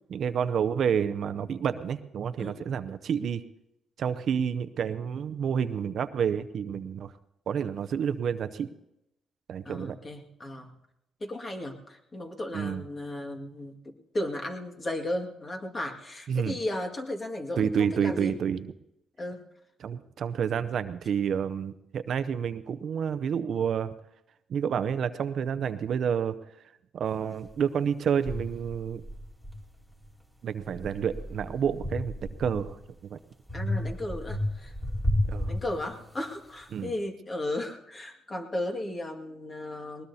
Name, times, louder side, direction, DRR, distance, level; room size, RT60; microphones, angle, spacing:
voice 1, 0.1-3.4 4.0-7.1 7.5-8.7 9.5-10.0 12.5-12.8 16.3-16.6 17.6-18.6 19.8-23.9 24.5-26.3 26.9-29.0 30.4-32.8 33.1-33.2 35.3-35.5 36.7-36.9, right 7 dB, 60° right, 12 dB, 0.6 m, -29 dB
voice 2, 9.7-10.7 11.2-18.4 19.2-19.4 33.5-34.7 35.5-40.1, left 1 dB, 30° left, 3 dB, 1.9 m, -35 dB
sound 1, 27.5-27.6 28.3-30.1 30.6-32.9 33.5-36.3, left 1 dB, 10° left, 2.8 m, -33 dB
20.0 x 20.0 x 2.8 m, 0.85 s
cardioid pair, 90°, 0 cm